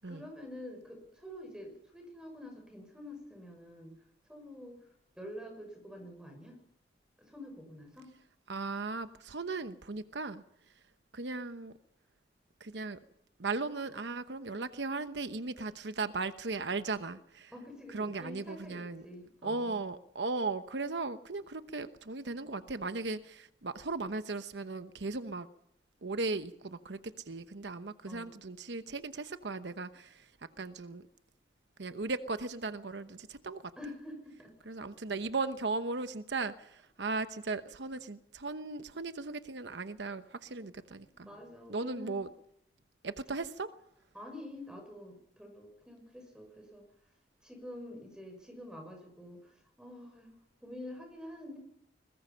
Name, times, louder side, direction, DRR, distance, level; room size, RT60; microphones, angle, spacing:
voice 1, 0.0-3.9 4.3-4.8 5.1-6.6 7.2-8.1 17.5-19.8 28.1-28.3 33.8-34.6 41.2-42.2 44.1-46.8 47.4-51.6, left 1 dB, 5° right, 4 dB, 6.6 m, -47 dB
voice 2, 8.5-10.4 11.1-11.7 12.6-13.0 13.4-17.5 17.9-19.1 19.4-25.5 26.0-30.3 30.6-31.1 31.8-33.7 34.7-41.3 41.7-42.3 43.0-43.7, right 3 dB, 80° right, 10 dB, 1.0 m, -37 dB
21.5 x 21.0 x 5.7 m, 0.76 s
head